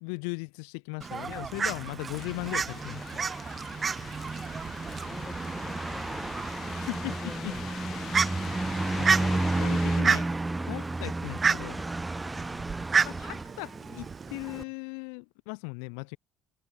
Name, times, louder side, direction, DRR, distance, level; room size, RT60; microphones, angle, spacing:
voice 1, 0.0-3.3 6.7-7.1 7.4-7.5 9.0-10.3 10.7-11.8 13.0-16.2, left 40 dB or more, 80° left, 0.6 m, -38 dB
Fowl, 1.0-14.6, right 5 dB, 35° right, 1.2 m, -32 dB
sound 1, 1.8-13.4, right 2 dB, 15° right, 0.8 m, -33 dB
sound 2, 2.2-10.0, left 12 dB, 60° left, 1.0 m, -44 dB
voice 2, 4.8-7.7 8.0-8.9 13.2-14.6, left 3 dB, 20° left, 4.5 m, -48 dB
hypercardioid pair, 65°, 0 cm